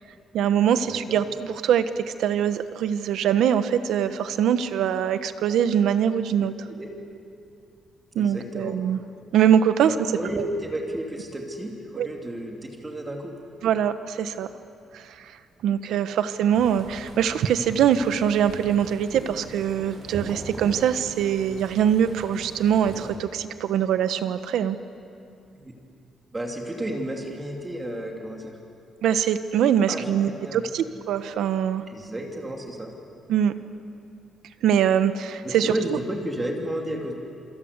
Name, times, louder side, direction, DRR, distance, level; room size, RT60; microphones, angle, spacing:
voice 1, 0.3-6.5 8.1-9.0 9.3-9.9 12.0-12.1 13.6-14.5 14.9-15.0 15.6-24.8 29.0-31.8 33.3-33.5 34.6-36.0, right 9 dB, 85° right, 10 dB, 1.2 m, -23 dB
voice 2, 0.9-1.3 6.7-6.9 8.2-8.7 9.8-13.4 25.5-25.7 26.3-28.6 29.9-30.2 30.4-30.6 31.9-32.9 35.4-37.1, right 1 dB, 15° right, 1 dB, 2.7 m, -32 dB
sound 1, 16.5-23.1, right 3 dB, 50° right, 6.3 m, -41 dB
27.0 x 26.0 x 8.2 m, 2.5 s
cardioid pair, 175°, 0 cm